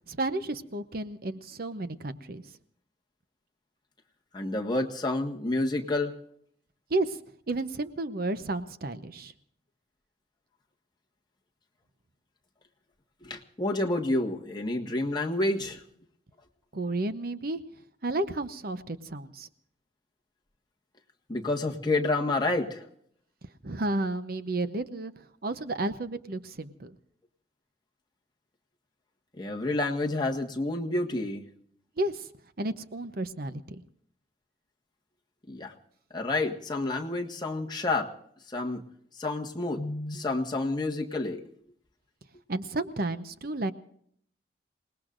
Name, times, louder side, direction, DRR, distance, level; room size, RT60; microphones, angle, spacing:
voice 1, 0.1-2.4 6.9-7.2 7.5-9.3 16.7-17.6 18.0-19.5 23.6-25.1 25.4-26.9 32.0-32.3 32.6-33.6 42.5-43.7, right 2 dB, 55° right, 11 dB, 0.8 m, -32 dB
voice 2, 4.3-6.1 13.2-15.8 21.3-22.8 29.4-31.4 35.5-35.7 36.1-38.1 38.5-38.8 39.2-41.4, left 2 dB, 25° left, 0 dB, 1.6 m, -29 dB
28.0 x 19.0 x 2.6 m, 0.66 s
head